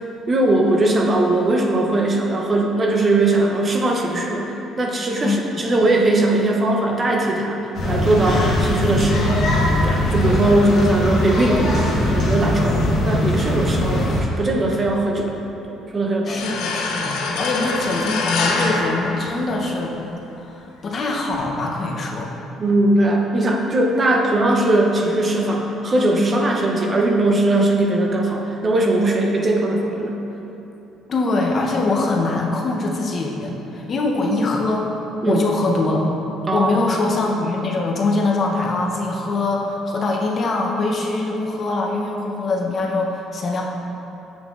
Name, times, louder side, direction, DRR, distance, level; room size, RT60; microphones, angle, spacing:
voice 1, 0.3-9.4 9.8-15.3 15.7-16.4 22.6-30.2 35.2-35.4 36.5-36.7, right 2 dB, 25° right, 0 dB, 0.5 m, -20 dB
voice 2, 5.2-5.6 16.3-19.9 20.4-22.3 31.1-35.0 35.3-36.1 36.5-43.6, left 3 dB, 35° left, 0 dB, 0.6 m, -23 dB
sound 1, 7.7-14.2, left 1 dB, 60° left, 1.4 m, -20 dB
sound 2, 16.4-19.9, left 3 dB, 80° left, 0.6 m, -25 dB
7.8 x 5.6 x 2.4 m, 3.0 s
cardioid pair, 145°, 0 cm